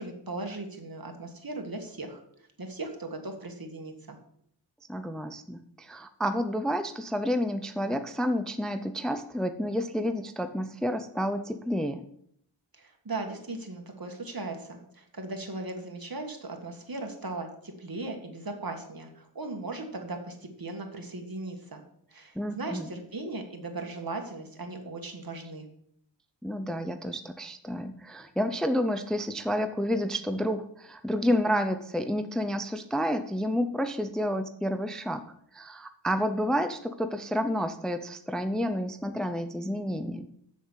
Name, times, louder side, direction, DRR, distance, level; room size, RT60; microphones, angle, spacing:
voice 1, 0.0-2.2 2.6-4.2 12.7-21.8 22.1-25.7, right 2 dB, 50° right, 4 dB, 1.9 m, -38 dB
voice 2, 4.9-12.1 22.4-22.9 26.4-35.2 35.5-40.3, equal, ahead, 8 dB, 0.6 m, -30 dB
7.3 x 7.2 x 8.0 m, 0.70 s
wide cardioid pair, 80°, 44 cm